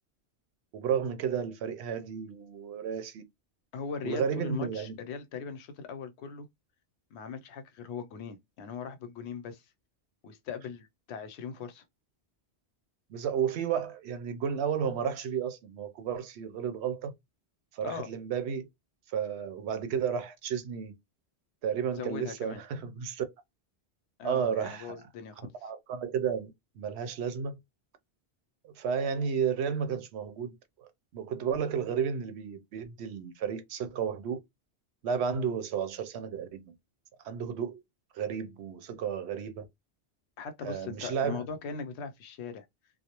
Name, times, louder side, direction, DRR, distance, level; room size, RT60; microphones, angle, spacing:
voice 1, 0.7-3.2 4.0-5.0 13.1-17.1 17.7-18.7 19.1-20.9 21.6-23.2 24.2-25.0 25.6-27.6 28.6-34.4 35.0-36.7 37.2-37.8 38.1-39.7 40.6-41.4, right 7 dB, 80° right, 0.8 m, -32 dB
voice 2, 3.7-6.5 7.1-9.6 10.2-11.8 17.8-18.1 22.0-22.6 24.2-25.5 40.4-42.7, left 6 dB, 80° left, 0.8 m, -40 dB
2.4 x 2.0 x 2.8 m
omnidirectional pair, 1.1 m